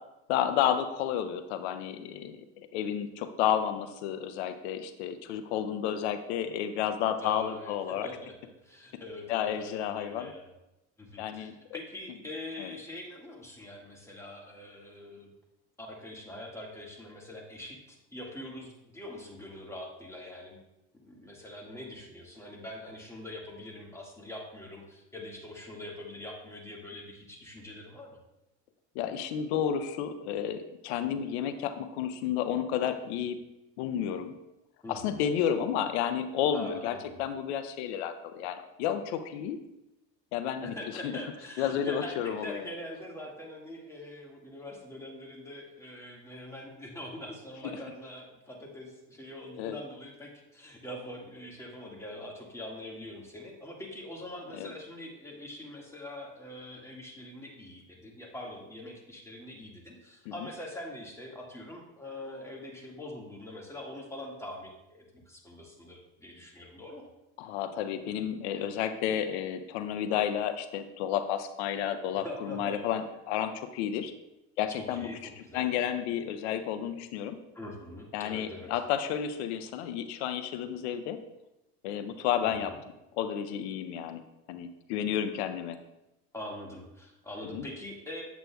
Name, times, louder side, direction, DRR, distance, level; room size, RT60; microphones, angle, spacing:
voice 1, 0.3-2.4 2.7-8.1 9.3-10.3 11.2-11.8 12.6-12.7 29.0-33.4 33.8-34.3 34.9-39.6 40.3-40.7 41.0-41.1 41.6-42.6 49.6-49.8 54.5-54.7 60.3-60.4 67.4-74.1 74.6-75.1 75.5-77.4 78.1-81.2 81.8-82.7 83.1-84.2 84.5-85.8 87.5-87.6, left 9 dB, 90° left, 9 dB, 0.6 m, -31 dB
voice 2, 7.2-8.3 8.6-10.5 11.0-15.3 15.8-20.6 21.0-28.2 34.8-35.3 36.5-37.2 40.6-67.1 72.2-72.8 74.7-75.7 77.5-78.7 82.4-82.8 86.3-88.2, left 1 dB, 10° left, -1 dB, 1.7 m, -43 dB
8.0 x 7.6 x 2.3 m, 0.92 s
supercardioid pair, 105°, 32 cm